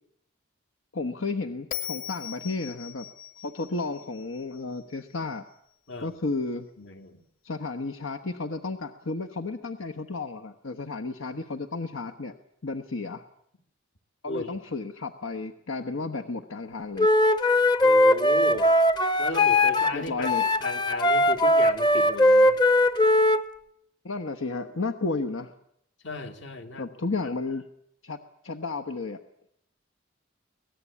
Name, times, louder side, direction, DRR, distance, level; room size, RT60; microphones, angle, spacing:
voice 1, 0.9-3.1 3.4-5.5 6.0-6.7 7.4-12.3 12.6-13.2 14.2-17.1 19.9-20.4 24.0-25.5 26.8-27.6 28.0-28.2 28.4-29.2, left 3 dB, 85° left, 5 dB, 1.2 m, -32 dB
Bell, 1.7-5.0, left 10 dB, 45° left, 1.9 m, -39 dB
voice 2, 6.8-7.2 14.3-14.6 17.8-18.7 19.2-20.3 20.6-22.6 26.0-26.9, left 2 dB, 60° left, 7 dB, 2.2 m, -35 dB
Wind instrument woodwind instrument, 17.0-19.9 20.2-23.4, left 1 dB, 20° left, 0.8 m, -20 dB
24.0 x 18.5 x 8.5 m, 0.75 s
head